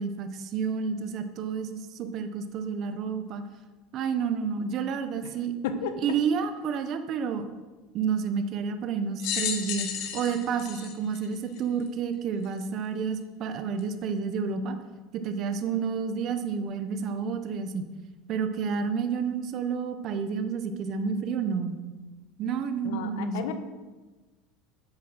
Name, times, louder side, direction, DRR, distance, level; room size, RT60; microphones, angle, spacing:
voice 1, 0.0-3.4 3.9-5.5 6.0-7.5 7.9-14.8 15.1-17.9 18.3-21.8 22.4-23.5, right 6 dB, 40° right, 8 dB, 0.9 m, -30 dB
sound 1, 9.2-11.9 12.6-12.7 13.8-13.9, left 8 dB, 60° left, 1.9 m, -33 dB
voice 2, 22.8-23.5, left 7 dB, 90° left, 8 dB, 1.3 m, -32 dB
9.8 x 7.8 x 6.2 m, 1.2 s
cardioid pair, 155°, 0 cm